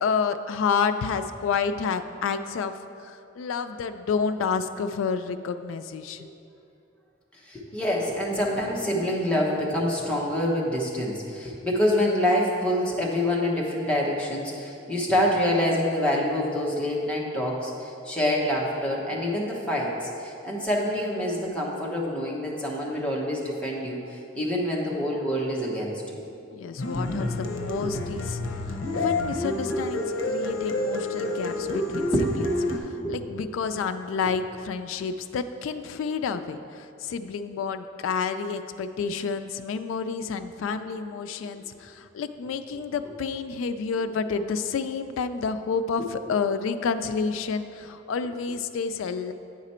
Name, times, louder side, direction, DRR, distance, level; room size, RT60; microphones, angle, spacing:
voice 1, 0.0-2.7 3.0-6.3 26.5-32.1 32.9-49.3, left 5 dB, 90° left, 9 dB, 0.3 m, -29 dB
voice 2, 7.4-26.2 29.8-30.2 31.3-31.7 32.0-32.5 33.0-33.2, left 1 dB, 5° left, -4 dB, 1.0 m, -26 dB
sound 1, 26.8-32.8, left 2 dB, 70° left, 0.7 m, -28 dB
8.8 x 4.9 x 4.3 m, 2.6 s
head